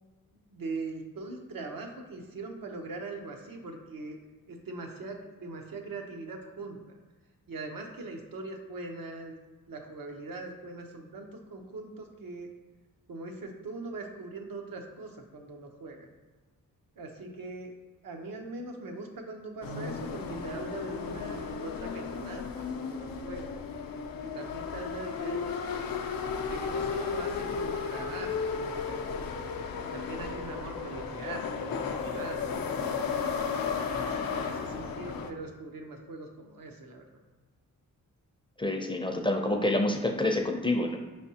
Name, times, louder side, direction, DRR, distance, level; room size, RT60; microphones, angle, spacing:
voice 1, 0.5-4.2 4.5-6.8 7.5-9.4 9.7-12.5 13.1-16.1 17.0-17.7 18.0-23.5 24.2-25.5 26.5-29.1 29.9-33.1 33.9-37.1, right 3 dB, 75° right, 2 dB, 0.8 m, -41 dB
sound 1, 19.6-35.3, left 5 dB, 90° left, 0.5 m, -34 dB
voice 2, 38.6-41.0, left 1 dB, 15° left, 3 dB, 0.4 m, -27 dB
5.3 x 3.4 x 2.8 m, 1.3 s
wide cardioid pair, 90°, 34 cm